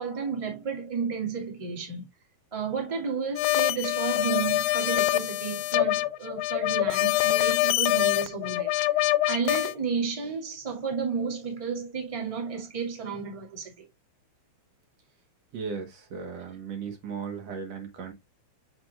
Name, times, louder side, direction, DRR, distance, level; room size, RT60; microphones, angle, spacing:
voice 1, 0.0-2.0 2.5-8.7 9.3-13.9, right 5 dB, 15° right, 1.9 m, -32 dB
sound 1, 3.4-9.7, left 17 dB, 85° left, 1.9 m, -25 dB
voice 2, 15.5-18.1, right 5 dB, 60° right, 2.5 m, -36 dB
7.1 x 6.1 x 2.4 m
omnidirectional pair, 3.4 m